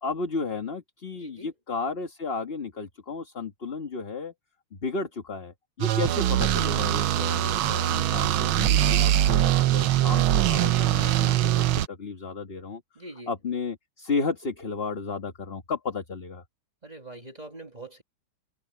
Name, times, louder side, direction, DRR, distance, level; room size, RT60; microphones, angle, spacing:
voice 1, 0.0-4.3 4.8-12.8 13.3-16.4, left 4 dB, 30° left, 1.7 m, -33 dB
voice 2, 1.2-1.5 5.9-6.3 13.0-13.3 16.8-18.0, right 2 dB, 20° right, 1.8 m, -43 dB
sound 1, 5.8-11.9, right 12 dB, 90° right, 1.6 m, -22 dB
omnidirectional pair, 2.1 m